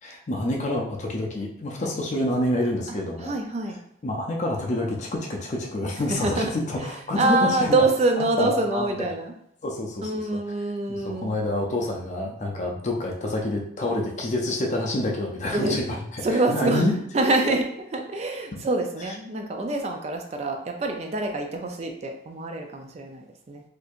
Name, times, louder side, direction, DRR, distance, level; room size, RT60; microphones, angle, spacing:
voice 1, 0.0-3.3 3.7-7.8 8.2-9.1 9.6-10.4 10.9-17.0 18.5-18.6 19.0-19.1, left 1 dB, 40° left, 0 dB, 0.4 m, -28 dB
voice 2, 3.2-3.8 6.1-6.5 7.2-9.3 10.0-11.3 15.5-15.8 16.2-16.8 17.1-17.7 17.9-23.6, right 2 dB, 35° right, 3 dB, 0.3 m, -25 dB
4.3 x 2.6 x 2.4 m, 0.76 s
head